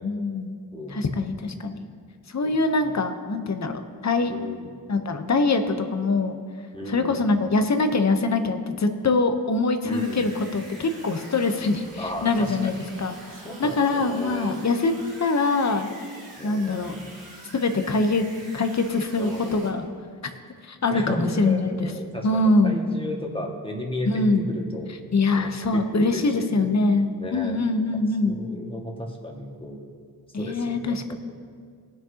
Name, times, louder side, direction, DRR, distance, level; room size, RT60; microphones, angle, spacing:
voice 1, 0.0-0.6 0.9-1.9 2.3-4.3 4.9-6.4 6.9-13.2 13.6-14.9 15.2-15.9 16.4-16.9 17.5-18.2 18.5-19.8 20.6-21.9 22.2-22.8 24.0-24.4 25.1-28.4 30.3-31.1, left 3 dB, 45° left, 7 dB, 0.9 m, -23 dB
voice 2, 0.7-1.1 2.4-2.9 4.3-4.7 6.7-7.2 9.8-10.3 12.0-12.8 13.4-14.6 16.4-17.1 19.2-19.7 20.9-24.9 25.3-26.7 27.2-27.6 27.9-29.8 30.4-31.1, left 1 dB, 15° left, 0 dB, 1.8 m, -35 dB
sound 1, 9.9-19.7, right 2 dB, 60° right, 2.2 m, -45 dB
19.0 x 6.5 x 2.8 m, 2.1 s
cardioid pair, 60°, 39 cm